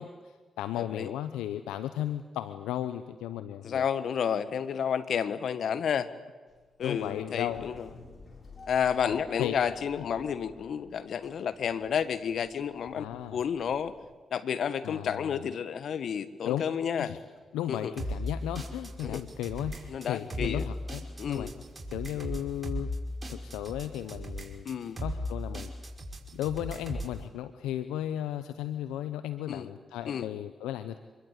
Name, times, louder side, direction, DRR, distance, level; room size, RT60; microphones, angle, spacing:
voice 1, 0.0-3.8 6.8-7.7 9.1-9.6 10.0-10.1 12.9-13.4 14.8-15.5 16.4-16.7 17.0-17.2 17.5-21.5 21.9-22.9 23.3-24.7 25.0-25.7 26.3-31.0, left 12 dB, 85° left, 11 dB, 0.8 m, -35 dB
voice 2, 0.8-1.1 3.6-6.1 6.8-7.9 8.7-13.9 14.3-17.1 17.7-17.9 19.0-19.2 19.9-20.7 21.2-21.5 24.6-25.0 29.5-29.7 30.1-30.3, left 8 dB, 70° left, 12 dB, 1.4 m, -31 dB
sound 1, 6.5-14.1, left 4 dB, 55° left, 6.1 m, -52 dB
sound 2, 18.0-27.2, equal, 30° right, 5.3 m, -37 dB
26.0 x 22.5 x 8.3 m, 1.4 s
hypercardioid pair, 45°, 0 cm